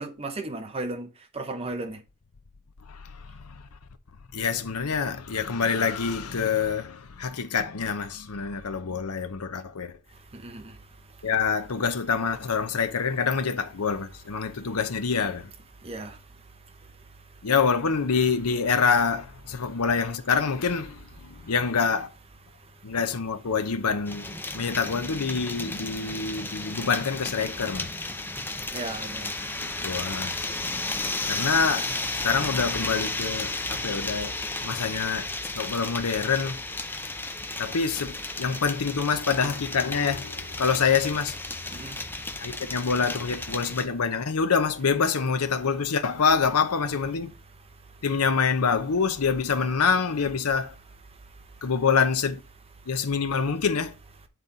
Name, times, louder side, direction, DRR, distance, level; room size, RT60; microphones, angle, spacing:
voice 1, 0.0-2.0 10.3-10.8 15.8-16.2 21.3-21.5 28.2-29.4 41.7-42.0, right 2 dB, 25° right, 1.0 m, -36 dB
voice 2, 2.9-3.6 4.3-9.9 11.2-15.5 17.4-22.1 22.8-27.9 29.6-30.4 31.3-31.9 32.2-34.3 34.6-35.3 35.6-36.6 37.6-41.4 42.4-47.3 48.0-50.7 51.6-52.4 52.9-53.9, left 5 dB, 80° left, 0.8 m, -26 dB
sound 1, 24.1-43.9, left 2 dB, 10° left, 0.6 m, -33 dB
9.0 x 4.1 x 4.0 m
head